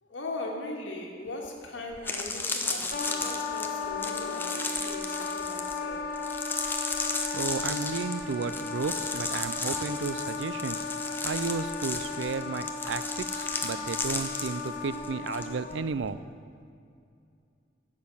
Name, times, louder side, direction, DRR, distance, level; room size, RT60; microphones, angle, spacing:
voice 1, 0.0-6.1 14.8-15.0, left 2 dB, 80° left, 0 dB, 1.8 m, -39 dB
sound 1, 1.4-1.5 1.9-15.5 15.7-16.1, left 3 dB, 10° left, 0.6 m, -34 dB
Wind instrument woodwind instrument, 2.9-15.8, left 4 dB, 45° left, 1.4 m, -35 dB
voice 2, 7.3-10.8 11.2-16.2, right 4 dB, 75° right, 14 dB, 0.4 m, -33 dB
10.5 x 7.5 x 7.2 m, 2.4 s
head